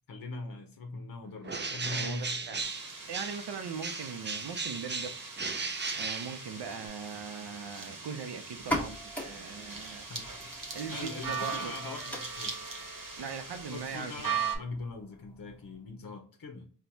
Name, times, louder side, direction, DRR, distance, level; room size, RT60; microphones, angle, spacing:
voice 1, 0.1-2.6 10.1-10.5 10.9-12.6 13.7-16.7, left 3 dB, 60° left, 4 dB, 0.7 m, -42 dB
Bird, 1.4-3.5 3.8-6.9, right 4 dB, 30° right, 0.4 m, -36 dB
voice 2, 1.9-2.6 3.1-5.2 6.0-10.1 10.7-11.7 13.2-14.1, right 6 dB, 80° right, 7 dB, 0.6 m, -40 dB
sound 1, 2.6-14.6, right 5 dB, 50° right, 1.0 m, -40 dB
sound 2, 8.5-16.0, equal, 5° left, 1.3 m, -42 dB
4.2 x 2.2 x 2.6 m, 0.42 s
cardioid pair, 50°, 40 cm